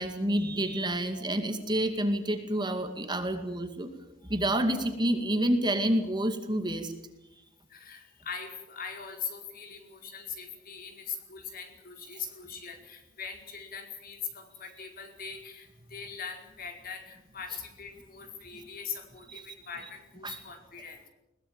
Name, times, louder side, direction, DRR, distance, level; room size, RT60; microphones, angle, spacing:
voice 1, 0.0-3.9 4.3-6.9 19.3-19.4 20.2-20.4, right 1 dB, 25° right, 6 dB, 2.3 m, -28 dB
voice 2, 7.7-21.1, left 6 dB, 50° left, 4 dB, 4.9 m, -41 dB
21.5 x 20.0 x 9.0 m, 0.95 s
head